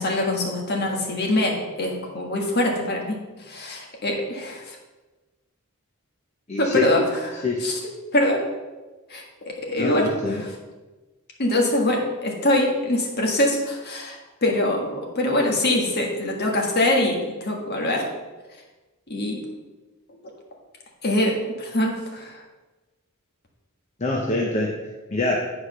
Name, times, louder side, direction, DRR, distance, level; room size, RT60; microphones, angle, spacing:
voice 1, 0.0-3.2 3.5-4.8 6.6-7.7 8.1-8.4 9.1-10.5 11.4-18.1 19.1-19.4 21.0-22.4, left 1 dB, 50° left, 0 dB, 1.6 m, -24 dB
voice 2, 6.5-6.9 7.4-7.6 9.8-10.4 24.0-24.7 25.1-25.4, left 3 dB, 30° left, -1 dB, 0.8 m, -24 dB
8.7 x 4.9 x 5.7 m, 1.2 s
head